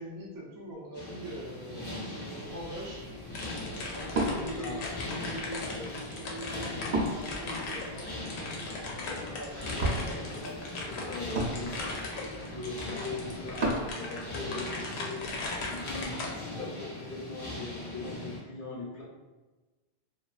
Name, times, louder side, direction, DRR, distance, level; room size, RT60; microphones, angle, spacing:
voice 1, 0.0-3.1 3.8-8.2 8.7-11.8, equal, 35° right, -4 dB, 0.3 m, -43 dB
sound 1, 0.9-18.4, left 1 dB, 30° left, 0.5 m, -41 dB
Wood, 2.4-13.9, right 1 dB, 60° right, 0.8 m, -37 dB
sound 2, 3.4-16.3, left 3 dB, 85° left, 0.9 m, -39 dB
voice 2, 4.3-4.9 9.7-9.9 10.9-11.7 12.4-16.2 16.5-19.0, left 3 dB, 55° left, -6 dB, 0.9 m, -40 dB
2.4 x 2.2 x 2.3 m, 1.2 s
omnidirectional pair, 1.1 m